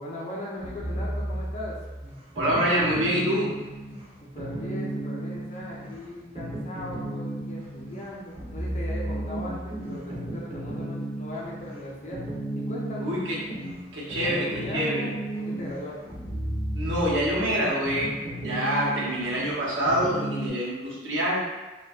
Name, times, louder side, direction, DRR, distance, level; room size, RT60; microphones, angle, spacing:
voice 1, 0.0-1.8 4.2-12.2 12.5-13.1 14.1-16.2, left 1 dB, 40° left, -4 dB, 0.5 m, -38 dB
sound 1, 0.6-20.5, right 1 dB, 30° right, 0.5 m, -34 dB
voice 2, 2.3-3.5 13.0-13.4 13.9-15.1 16.7-21.5, equal, 85° right, -6 dB, 0.7 m, -26 dB
2.5 x 2.2 x 2.3 m, 1.2 s
head